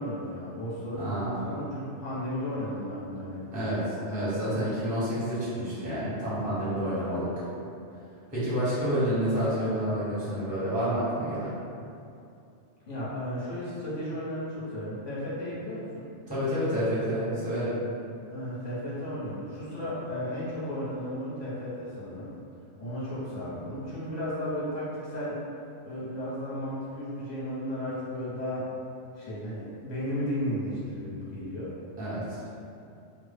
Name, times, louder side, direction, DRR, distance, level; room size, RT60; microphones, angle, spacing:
voice 1, 0.0-3.7 12.9-16.0 18.3-22.3 22.8-25.3 25.8-28.6 29.2-31.7, equal, 40° left, -9 dB, 0.7 m, -34 dB
voice 2, 0.9-1.4 3.5-7.3 8.3-11.5 16.3-17.7 32.0-32.4, equal, 10° right, -11 dB, 0.6 m, -29 dB
2.0 x 2.0 x 3.3 m, 2.6 s
omnidirectional pair, 1.2 m